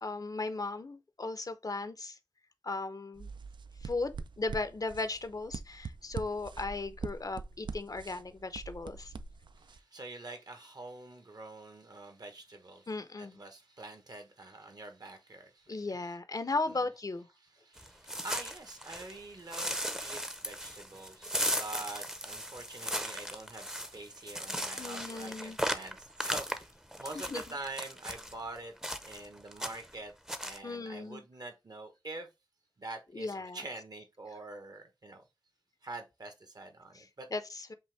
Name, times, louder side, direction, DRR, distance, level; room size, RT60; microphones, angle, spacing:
voice 1, 0.0-2.2 2.6-3.3 3.8-9.1 12.9-13.4 15.7-17.3 24.8-25.6 27.1-27.6 30.6-31.2 33.1-33.6 36.9-37.7, left 3 dB, 45° left, 0.6 m, -37 dB
sound 1, 3.2-9.8, right 5 dB, 70° right, 0.3 m, -43 dB
voice 2, 9.6-16.2 16.6-16.8 17.3-26.7 27.0-28.7 29.0-30.1 30.4-32.3 32.8-35.2 35.8-37.3, right 2 dB, 50° right, 1.0 m, -46 dB
sound 2, 17.8-19.2 19.5-28.3 28.8-29.3 29.5-29.9 30.3-30.6, equal, 5° right, 0.6 m, -37 dB
5.4 x 2.5 x 3.2 m
wide cardioid pair, 65°, 8 cm